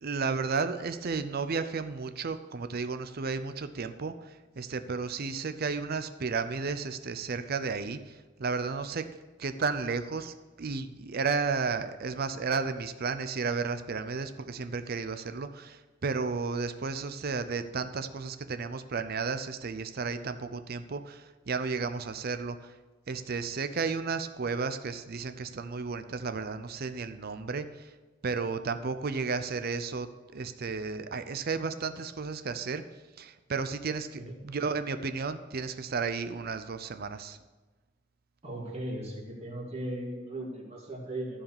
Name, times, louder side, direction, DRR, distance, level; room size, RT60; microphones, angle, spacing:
voice 1, 0.0-9.0 9.4-22.7 23.1-27.9 28.2-30.1 30.3-32.8 33.2-37.4, right 4 dB, 50° right, 10 dB, 0.6 m, -33 dB
voice 2, 38.4-41.4, right 1 dB, 30° right, -3 dB, 2.5 m, -37 dB
14.0 x 4.9 x 7.1 m, 1.2 s
head